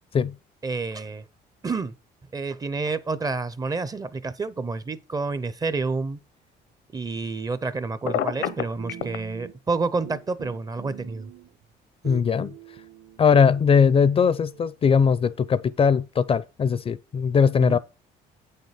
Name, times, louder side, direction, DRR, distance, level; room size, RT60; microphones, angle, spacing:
voice 1, 0.6-1.3 1.6-1.9 2.3-6.2 6.9-11.3 17.6-17.8, right 3 dB, 20° right, 0.6 m, -29 dB
sound 1, 8.0-9.8 10.0-11.6 12.0-14.7, right 9 dB, 55° right, 1.2 m, -43 dB
Telephone, 8.1-9.2, left 11 dB, 85° left, 1.0 m, -26 dB
voice 2, 12.0-12.5 13.2-17.8, left 6 dB, 35° left, 0.5 m, -20 dB
8.2 x 6.6 x 4.9 m
cardioid pair, 110°, 17 cm